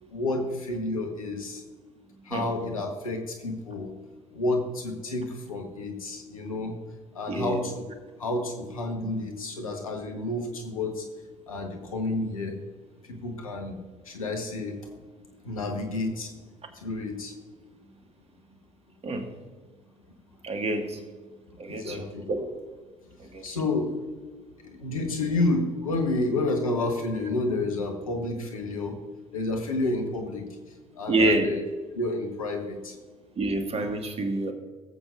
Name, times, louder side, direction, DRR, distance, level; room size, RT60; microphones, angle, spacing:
voice 1, 0.1-1.6 2.2-3.9 4.3-6.7 7.1-7.9 8.2-11.0 11.5-12.6 13.0-13.8 14.0-14.8 15.4-16.3 16.7-17.3 21.7-22.2 23.4-24.0 24.6-29.0 29.3-30.5 31.0-31.6 31.9-32.9, left 2 dB, 85° left, 3 dB, 1.4 m, -30 dB
voice 2, 7.3-7.6 19.0-19.3 20.4-21.0 21.6-22.5 23.2-23.6 31.1-31.5 33.4-34.5, right 2 dB, 35° right, 4 dB, 1.9 m, -27 dB
18.0 x 8.0 x 2.6 m, 1.4 s
figure-of-eight pair, 60°, 17 cm